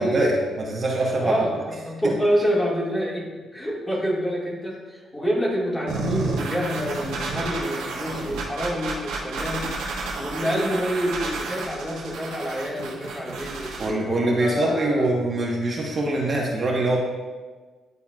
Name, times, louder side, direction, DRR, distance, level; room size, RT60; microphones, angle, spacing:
voice 1, 0.0-1.4 2.0-2.1 13.8-17.0, right 2 dB, 40° right, -2 dB, 1.1 m, -23 dB
voice 2, 1.2-9.7 10.2-13.7 14.4-15.1, equal, 15° left, -5 dB, 1.9 m, -27 dB
sound 1, 5.9-13.9, right 3 dB, 90° right, 1.2 m, -31 dB
10.5 x 4.1 x 2.4 m, 1.4 s
cardioid pair, 90°, 0 cm